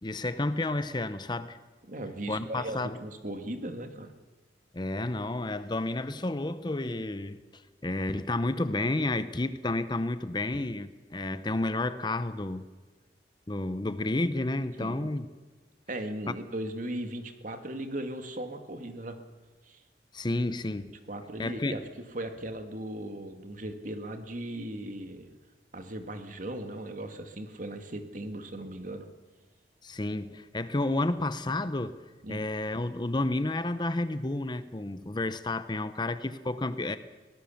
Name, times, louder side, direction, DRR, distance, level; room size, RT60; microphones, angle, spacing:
voice 1, 0.0-1.6 2.3-3.0 4.7-12.6 13.5-15.3 20.1-20.9 21.4-21.8 29.8-31.9 32.3-37.0, left 2 dB, 25° left, 12 dB, 0.7 m, -31 dB
voice 2, 1.9-4.1 14.8-15.2 15.9-19.2 19.6-19.8 20.5-21.8 22.1-25.3 25.7-29.1 32.2-32.4, right 1 dB, 50° right, 6 dB, 2.0 m, -38 dB
23.0 x 18.0 x 7.1 m, 1.3 s
head